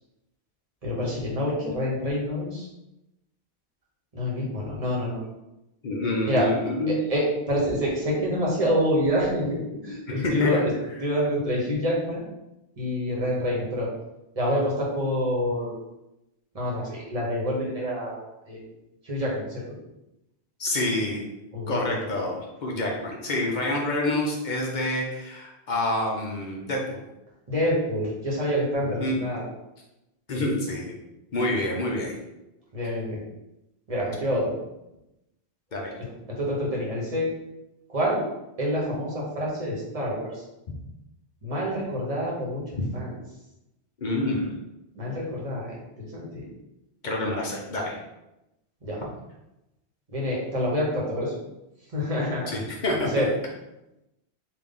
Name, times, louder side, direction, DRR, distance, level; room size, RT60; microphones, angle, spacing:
voice 1, 0.8-2.7 4.1-5.2 6.2-6.5 6.9-10.7 11.0-12.2 12.8-13.9 14.4-15.7 16.5-18.6 19.0-19.8 21.5-22.0 27.5-29.4 32.7-33.2 33.9-34.5 36.3-37.3 37.9-38.2 38.6-40.4 41.4-43.1 44.9-46.5 48.8-49.0 50.1-51.4 51.9-52.5 53.1-53.3, equal, 35° right, -4 dB, 1.1 m, -27 dB
voice 2, 5.8-7.0 10.1-10.6 20.6-21.2 21.7-27.0 28.8-29.2 30.3-30.9 31.3-32.2 35.7-35.9 40.7-40.8 44.0-44.5 47.0-48.0 52.5-53.2, left 1 dB, 50° left, -1 dB, 0.7 m, -27 dB
3.8 x 2.5 x 3.6 m, 0.92 s
omnidirectional pair, 1.1 m